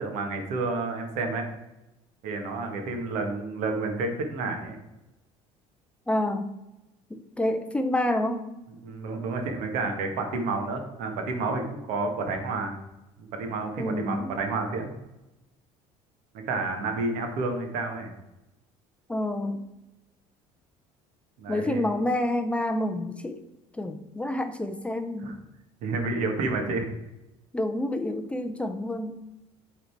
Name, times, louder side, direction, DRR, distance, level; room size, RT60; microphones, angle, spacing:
voice 1, 0.0-1.5 2.2-4.8 8.8-12.7 13.2-14.9 16.3-18.1 21.4-21.8 25.2-25.4 25.8-26.9, right 3 dB, 75° right, 4 dB, 1.5 m, -30 dB
voice 2, 6.1-6.5 7.1-8.5 13.8-14.3 19.1-19.6 21.5-23.4 23.8-25.3 27.5-29.2, left 1 dB, 10° left, 8 dB, 0.4 m, -28 dB
8.4 x 3.9 x 4.5 m, 0.97 s
cardioid pair, 140°, 13 cm